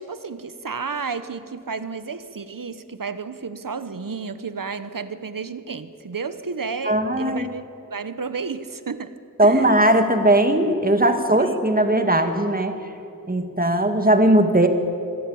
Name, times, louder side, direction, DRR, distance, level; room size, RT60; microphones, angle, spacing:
voice 1, 0.0-9.1 9.4-9.8 11.3-11.5, right 5 dB, 65° right, 12 dB, 1.0 m, -32 dB
voice 2, 6.9-7.4 9.4-12.8 13.3-14.7, right 1 dB, 25° right, 6 dB, 1.9 m, -18 dB
26.0 x 13.0 x 8.7 m, 2.8 s
wide cardioid pair, 55°, 35 cm